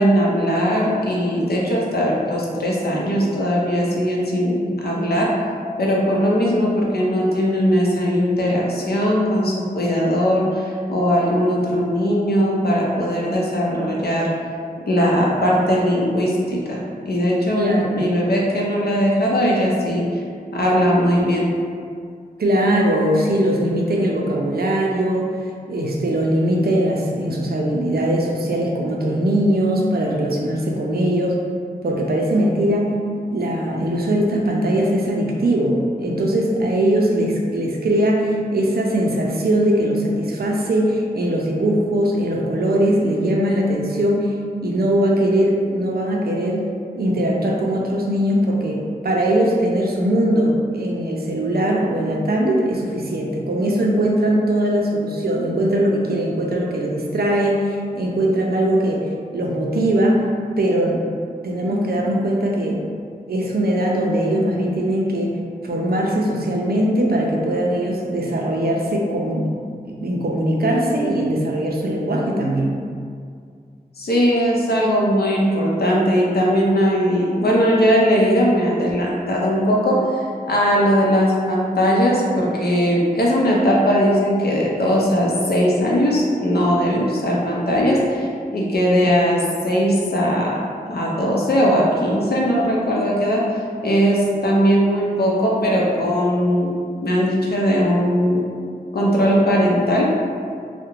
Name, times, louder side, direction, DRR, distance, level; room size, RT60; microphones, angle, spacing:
voice 1, 0.0-5.3 5.8-14.3 14.9-20.2 20.5-21.5 74.0-90.6 90.9-93.4 93.8-98.5 98.9-100.1, equal, 75° left, -4 dB, 0.5 m, -19 dB
voice 2, 17.6-17.9 22.4-25.4 25.7-31.4 31.8-33.0 33.2-44.4 44.6-46.7 46.9-60.3 60.6-61.1 61.4-62.9 63.3-65.4 65.6-69.6 69.8-72.8, right 1 dB, 75° right, -1 dB, 0.4 m, -20 dB
2.4 x 2.0 x 3.0 m, 2.2 s
wide cardioid pair, 50°, 16 cm